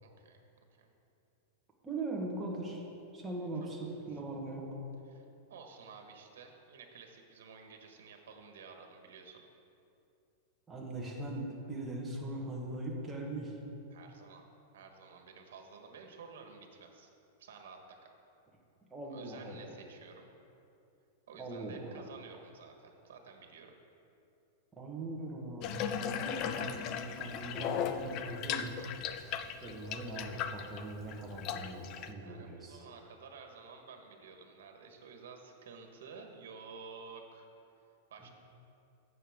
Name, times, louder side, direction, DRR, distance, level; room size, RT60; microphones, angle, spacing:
voice 1, 0.0-0.4 0.8-0.9 5.1-9.4 13.9-14.4 14.7-17.1 17.4-17.8 19.1-20.3 21.3-23.7 32.2-37.5 38.1-38.3, right 5 dB, 80° right, 3 dB, 1.4 m, -52 dB
voice 2, 1.8-2.8 3.1-4.8 10.7-13.6 18.9-19.8 21.4-22.1 24.8-28.7 29.6-32.8 38.2-38.3, right 2 dB, 10° right, -3 dB, 1.4 m, -41 dB
Water tap faucet / Bathtub (filling or washing), 25.6-32.1, left 8 dB, 30° left, 0.4 m, -37 dB
15.0 x 6.9 x 3.7 m, 2.7 s
supercardioid pair, 170°, 0 cm